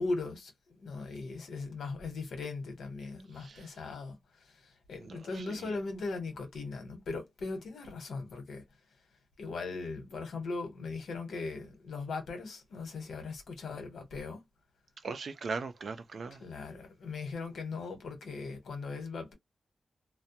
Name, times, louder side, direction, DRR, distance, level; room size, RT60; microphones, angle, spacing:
voice 1, 0.0-8.6 9.4-14.5 16.4-19.3, left 3 dB, 90° left, 1.0 m, -39 dB
voice 2, 3.4-3.7 5.0-5.6 15.0-16.4, right 4 dB, 65° right, 0.5 m, -39 dB
2.2 x 2.1 x 2.7 m
wide cardioid pair, 90°, 0 cm